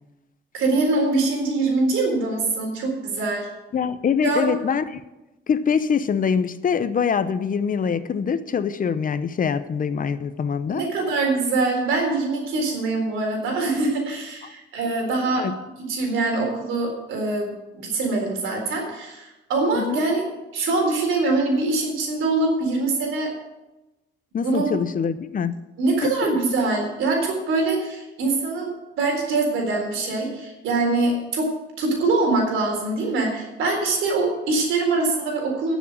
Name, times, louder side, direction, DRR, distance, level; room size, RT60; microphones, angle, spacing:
voice 1, 0.5-3.5 4.2-4.5 10.7-15.4 15.9-20.2 20.5-23.3 24.4-24.7 25.8-28.7 29.0-31.5 31.8-35.8, right 3 dB, 85° right, 4.0 m, -23 dB
voice 2, 3.7-5.0 5.5-10.8 14.4-14.5 15.2-15.5 19.7-20.1 24.3-25.5 26.0-26.4, left 6 dB, 45° left, 0.8 m, -24 dB
11.0 x 7.3 x 8.8 m
cardioid pair, 90°, 20 cm